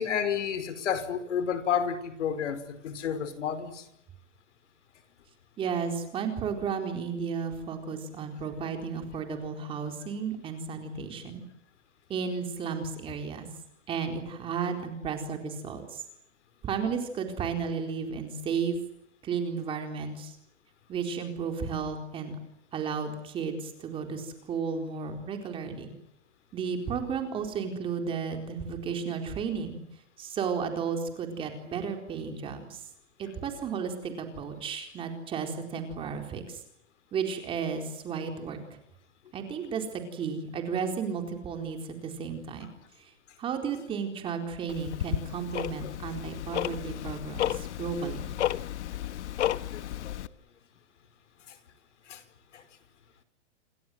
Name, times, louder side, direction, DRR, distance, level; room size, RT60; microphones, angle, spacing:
voice 1, 0.0-3.9 45.8-45.9 49.7-50.2 52.1-52.2 52.5-52.6, left 8 dB, 90° left, 5.2 m, -31 dB
voice 2, 5.6-11.4 12.1-13.5 13.9-16.0 16.6-18.8 19.2-20.4 20.9-22.4 22.7-25.9 26.5-29.8 30.2-32.9 33.2-36.6 37.1-38.6 39.3-43.1 43.4-48.3, right 6 dB, 15° right, 4.2 m, -33 dB
Tick-tock, 44.7-50.3, left 12 dB, 75° left, 1.5 m, -33 dB
28.5 x 25.0 x 7.7 m
supercardioid pair, 180°, 35 cm